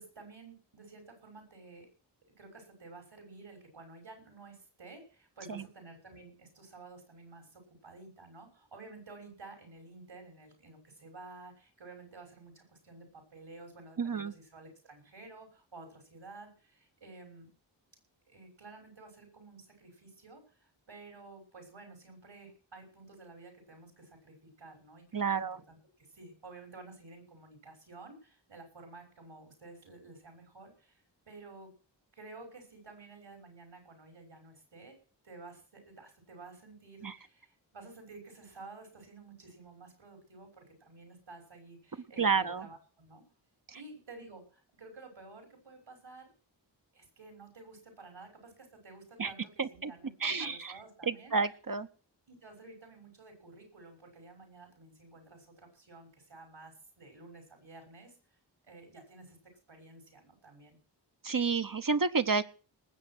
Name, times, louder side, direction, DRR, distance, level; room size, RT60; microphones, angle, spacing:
voice 1, 0.0-1.9 2.4-17.5 18.3-31.7 32.1-34.9 35.2-43.2 43.7-46.3 46.9-51.3 52.3-58.2 58.6-59.4 59.7-60.8, right 3 dB, 80° right, 4 dB, 6.3 m, -52 dB
voice 2, 14.0-14.3 25.1-25.6 37.0-37.1 42.2-42.7 43.7-43.8 49.2-49.3 49.6-49.9 50.2-50.7 51.0-51.9 61.2-62.4, right 5 dB, 45° right, 9 dB, 0.9 m, -30 dB
19.5 x 7.8 x 6.1 m, 0.39 s
cardioid pair, 40°, 45 cm